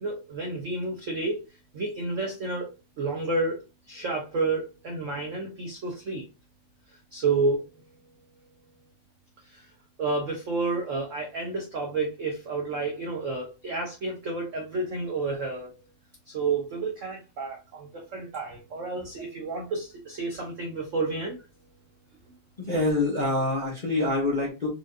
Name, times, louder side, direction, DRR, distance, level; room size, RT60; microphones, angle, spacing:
voice 1, 0.0-1.4 1.7-2.7 3.0-3.6 3.9-6.2 7.1-7.6 9.5-9.7 10.0-15.7 16.3-21.4, right 3 dB, 70° right, 1 dB, 0.7 m, -30 dB
voice 2, 22.6-24.7, left 2 dB, 40° left, -5 dB, 0.6 m, -26 dB
4.9 x 2.5 x 2.4 m, 0.28 s
omnidirectional pair, 2.2 m